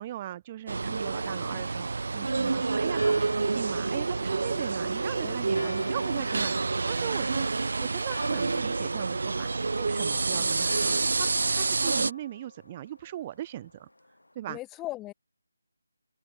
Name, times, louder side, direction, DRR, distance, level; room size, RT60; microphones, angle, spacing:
voice 1, 0.0-13.9 14.4-14.6, right 13 dB, 20° right, 2.1 m, -39 dB
sound 1, 0.7-12.1, right 3 dB, 55° right, 1.6 m, -28 dB
Church bell, 2.8-14.3, left 1 dB, 75° left, 7.0 m, -48 dB
voice 2, 5.2-5.9 10.3-10.5 14.5-15.1, left 17 dB, 10° left, 6.2 m, -40 dB
open air
figure-of-eight pair, 155°, 0 cm